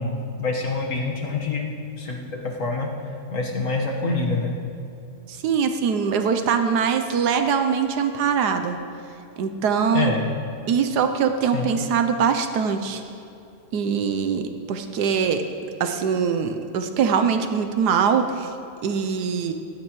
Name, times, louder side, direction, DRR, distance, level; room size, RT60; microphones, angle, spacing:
voice 1, 0.0-2.9 3.3-4.5 9.9-10.2 11.5-11.7, left 3 dB, 50° left, -1 dB, 1.6 m, -26 dB
voice 2, 5.3-8.8 9.4-10.2 10.7-13.0 13.7-15.4 15.8-18.5 18.8-19.5, right 6 dB, 75° right, 7 dB, 1.2 m, -22 dB
15.5 x 12.5 x 3.1 m, 2.6 s
omnidirectional pair, 1.8 m